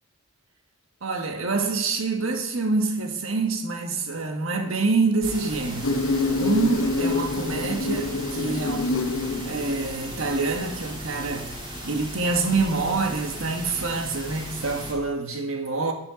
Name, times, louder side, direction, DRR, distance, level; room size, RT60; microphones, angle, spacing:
voice 1, 1.0-6.0 6.4-9.0 9.3-11.6 11.8-15.9, right 3 dB, 75° right, 1.4 m, -26 dB
sound 1, 5.2-14.9, equal, 20° right, 2.3 m, -37 dB
Insect, 5.8-10.8, left 3 dB, 75° left, 0.7 m, -27 dB
9.1 x 8.7 x 5.0 m
head